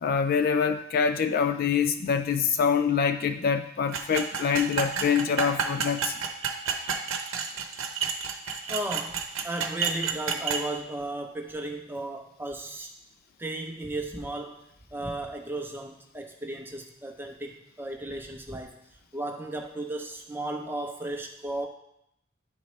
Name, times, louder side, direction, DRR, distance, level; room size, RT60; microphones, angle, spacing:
voice 1, 0.0-6.1, left 6 dB, 50° left, 8 dB, 0.3 m, -25 dB
sound 1, 3.9-10.6, right 6 dB, 85° right, 0.8 m, -30 dB
voice 2, 8.7-12.9 13.4-14.6 14.9-18.7 19.1-21.7, right 1 dB, 10° right, 2 dB, 0.7 m, -35 dB
10.5 x 4.2 x 3.2 m, 0.77 s
head